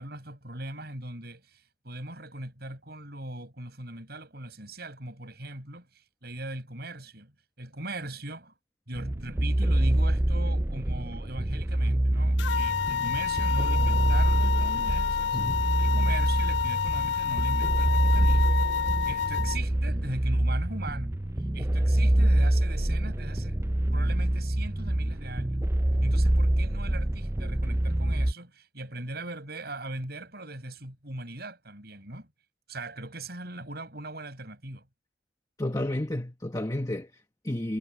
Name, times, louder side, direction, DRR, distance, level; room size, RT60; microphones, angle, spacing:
voice 1, 0.0-8.6 8.9-15.4 15.8-18.6 19.1-21.2 21.5-23.6 23.9-25.7 26.0-32.3 32.7-34.9, right 2 dB, 55° right, 7.8 m, -40 dB
sound 1, 8.9-28.3, right 1 dB, 15° right, 0.5 m, -25 dB
sound 2, 12.4-19.6, left 8 dB, 70° left, 0.4 m, -29 dB
voice 2, 15.3-15.7 35.6-37.8, left 1 dB, 20° left, 1.3 m, -32 dB
head